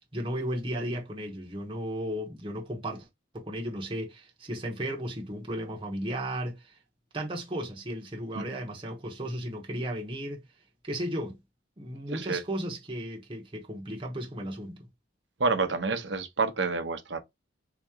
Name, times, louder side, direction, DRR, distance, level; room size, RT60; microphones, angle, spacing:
voice 1, 0.0-3.1 3.3-6.8 7.1-10.4 10.8-11.4 11.8-14.9, right 1 dB, 25° right, 1.0 m, -35 dB
voice 2, 12.1-12.4 15.4-17.2, right 4 dB, 75° right, 0.9 m, -28 dB
4.0 x 2.9 x 3.6 m
head